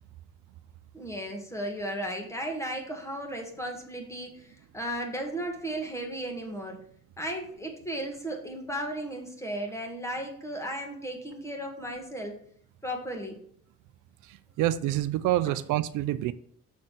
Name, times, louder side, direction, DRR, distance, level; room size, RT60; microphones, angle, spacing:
voice 1, 0.9-6.8 7.2-12.4 12.8-13.4 15.4-15.6, right 1 dB, 10° left, 1.8 m, -35 dB
voice 2, 14.3-16.3, right 14 dB, 85° right, 0.5 m, -27 dB
6.5 x 4.1 x 5.9 m
cardioid pair, 90°, 30 cm